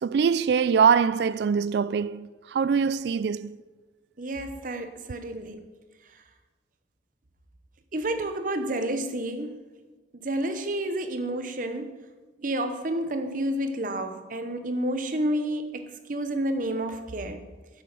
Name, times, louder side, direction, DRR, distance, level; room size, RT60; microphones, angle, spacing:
voice 1, 0.0-3.6, right 6 dB, 65° right, 0.3 m, -23 dB
voice 2, 4.2-5.6 7.9-9.6 10.1-11.9 12.4-17.4, right 1 dB, 45° right, 0.8 m, -30 dB
8.1 x 7.8 x 6.1 m
head